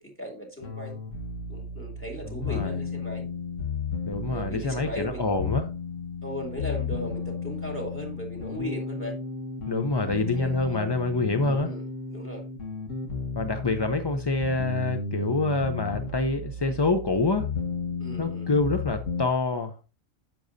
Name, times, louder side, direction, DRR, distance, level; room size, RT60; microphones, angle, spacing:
voice 1, 0.2-1.0 1.5-3.3 4.3-5.3 6.2-9.2 10.2-10.8 11.4-11.8 12.1-12.5 18.0-18.5, equal, 10° left, 2.7 m, -37 dB
sound 1, 0.6-19.3, left 4 dB, 70° left, 1.8 m, -34 dB
voice 2, 2.3-2.8 4.1-5.7 9.7-11.7 13.3-17.5 18.2-19.8, left 3 dB, 35° left, 0.4 m, -26 dB
10.0 x 7.7 x 2.7 m
omnidirectional pair, 1.4 m